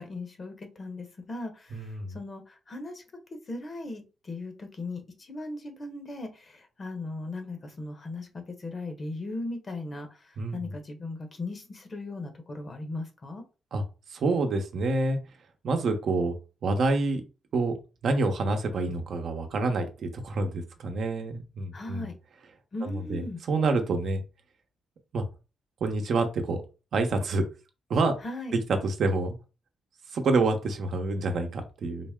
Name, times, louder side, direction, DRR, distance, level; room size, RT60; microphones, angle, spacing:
voice 1, 0.0-3.0 3.5-13.4 21.7-22.1 22.7-23.4 28.2-28.6, left 2 dB, 40° left, 5 dB, 1.1 m, -38 dB
voice 2, 1.7-2.2 10.4-10.7 13.7-13.8 14.1-15.2 15.6-16.3 16.6-17.2 17.5-17.7 18.0-22.1 22.8-24.2 25.1-25.2 25.8-26.6 26.9-27.4 27.9-28.2 28.8-29.4 30.1-32.1, right 3 dB, 65° right, 5 dB, 0.8 m, -27 dB
4.0 x 2.1 x 3.6 m, 0.31 s
cardioid pair, 75°, 0 cm